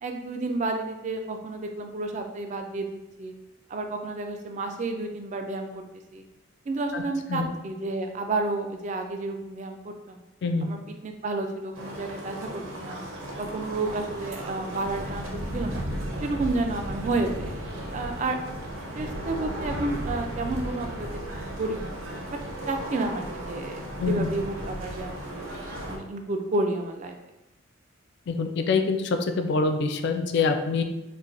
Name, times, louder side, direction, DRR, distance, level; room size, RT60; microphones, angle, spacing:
voice 1, 0.0-2.9 3.2-3.3 3.7-5.8 6.1-6.2 6.7-10.2 10.6-10.8 11.0-13.0 13.4-15.8 16.2-17.5 17.9-18.4 18.9-21.9 22.3-22.4 22.7-25.5 25.9-27.2, right 2 dB, 35° right, 4 dB, 0.3 m, -31 dB
sound 1, 11.7-26.0, right 1 dB, 80° right, 0.7 m, -35 dB
voice 2, 28.3-30.8, left 4 dB, 55° left, 6 dB, 0.3 m, -25 dB
4.2 x 2.2 x 2.5 m, 0.95 s
head